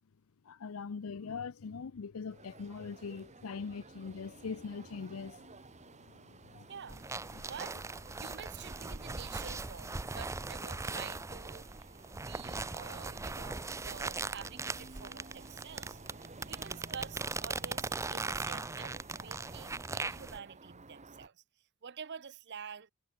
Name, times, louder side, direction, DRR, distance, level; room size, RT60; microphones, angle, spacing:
voice 1, 0.5-5.4 6.1-6.7 7.3-7.5, left 5 dB, 80° left, 0.6 m, -42 dB
sound 1, 2.3-21.3, right 3 dB, 35° right, 1.6 m, -53 dB
voice 2, 6.7-7.0 7.4-7.8 8.2-11.7 12.1-16.0 16.5-21.4 21.8-22.9, right 7 dB, 55° right, 0.7 m, -48 dB
sound 2, 6.9-20.4, right 3 dB, 15° right, 0.5 m, -39 dB
head